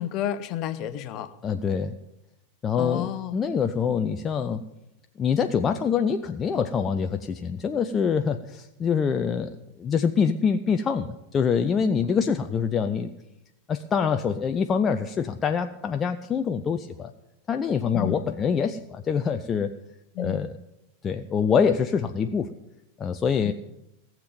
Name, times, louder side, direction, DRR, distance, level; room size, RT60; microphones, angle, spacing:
voice 1, 0.0-1.3 2.8-3.3 17.9-18.3 20.2-20.4 23.4-23.5, left 11 dB, 40° left, 12 dB, 1.0 m, -30 dB
voice 2, 1.4-1.9 2.6-4.6 5.2-13.1 13.7-17.1 17.5-19.8 20.2-20.6 21.0-22.5 23.0-23.5, left 6 dB, 25° left, 7 dB, 0.6 m, -25 dB
18.0 x 7.5 x 9.3 m, 0.89 s
figure-of-eight pair, 90°, 0 cm